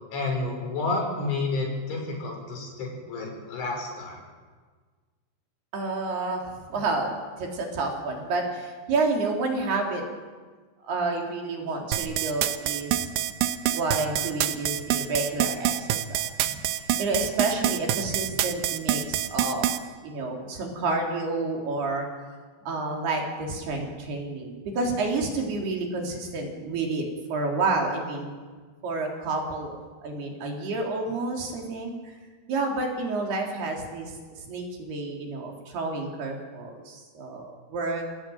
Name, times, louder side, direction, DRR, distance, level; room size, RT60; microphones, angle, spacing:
voice 1, 0.1-4.2, left 3 dB, 85° left, 1 dB, 8.8 m, -30 dB
voice 2, 5.7-10.0 10.8-13.1 13.7-19.7 20.0-22.1 22.6-27.1 27.3-28.3 28.8-32.1 32.5-38.0, right 3 dB, 60° right, 1 dB, 5.4 m, -30 dB
sound 1, 11.9-19.8, right 12 dB, 80° right, 3.3 m, -26 dB
28.0 x 19.0 x 9.4 m, 1.5 s
omnidirectional pair, 5.4 m